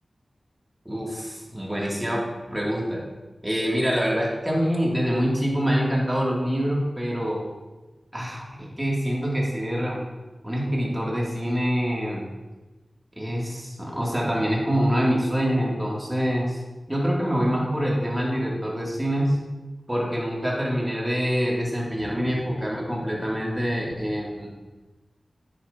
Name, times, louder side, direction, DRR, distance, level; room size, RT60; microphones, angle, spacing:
voice 1, 0.8-3.0 3.4-7.4 8.1-10.0 10.4-12.3 13.2-16.6 16.9-19.4 19.9-24.5, equal, 10° right, -4 dB, 2.5 m, -25 dB
10.0 x 9.5 x 2.8 m, 1.2 s
wide cardioid pair, 75°, 0 cm